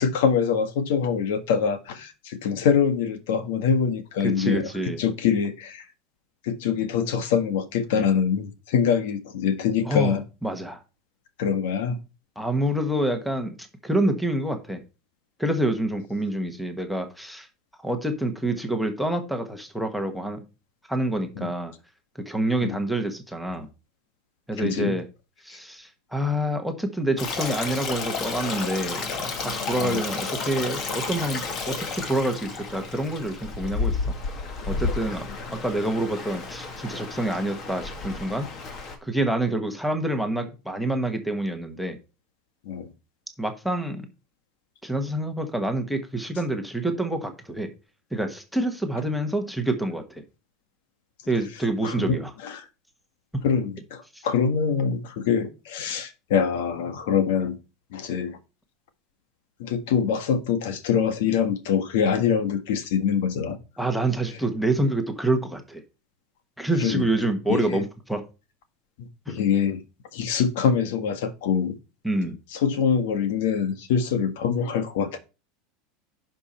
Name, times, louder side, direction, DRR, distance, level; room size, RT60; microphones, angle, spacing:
voice 1, 0.0-5.9 6.4-10.2 11.4-12.0 21.4-21.5 22.6-22.8 24.6-25.0 29.8-30.0 42.6-42.9 51.8-52.7 53.4-57.6 57.9-58.4 59.6-63.6 66.8-67.1 67.5-67.8 69.0-69.8 70.1-71.8 72.5-75.2, left 7 dB, 75° left, 9 dB, 1.6 m, -24 dB
voice 2, 4.2-5.0 9.9-10.8 12.4-13.6 13.8-14.8 15.4-17.5 17.8-20.4 20.9-21.7 22.2-23.7 24.5-25.0 25.4-34.1 34.7-38.5 39.0-42.0 43.4-44.1 44.8-47.7 48.1-50.2 51.3-52.3 53.3-53.4 54.1-54.2 63.8-65.8 66.6-68.2 69.3-69.4 72.0-72.4, right 1 dB, ahead, 7 dB, 1.3 m, -27 dB
Stream, 27.2-39.0, left 4 dB, 30° left, 1.8 m, -32 dB
11.0 x 5.4 x 4.3 m, 0.31 s
supercardioid pair, 170°, 0 cm